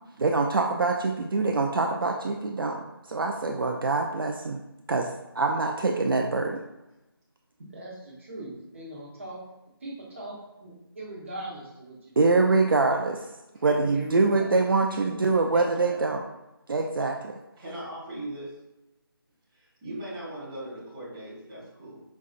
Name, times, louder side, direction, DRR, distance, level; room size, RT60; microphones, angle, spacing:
voice 1, 0.2-2.8 3.1-4.6 4.9-6.6 12.2-13.2 13.6-16.2 16.7-17.3, right 3 dB, 60° right, 2 dB, 0.4 m, -24 dB
voice 2, 7.7-9.4 9.8-12.3 13.9-14.6 14.9-16.1, right 1 dB, 30° right, -5 dB, 1.0 m, -40 dB
voice 3, 17.6-18.5 19.5-22.0, right 1 dB, 10° right, -11 dB, 0.6 m, -39 dB
5.1 x 2.3 x 2.4 m, 0.97 s
figure-of-eight pair, 165°, 13 cm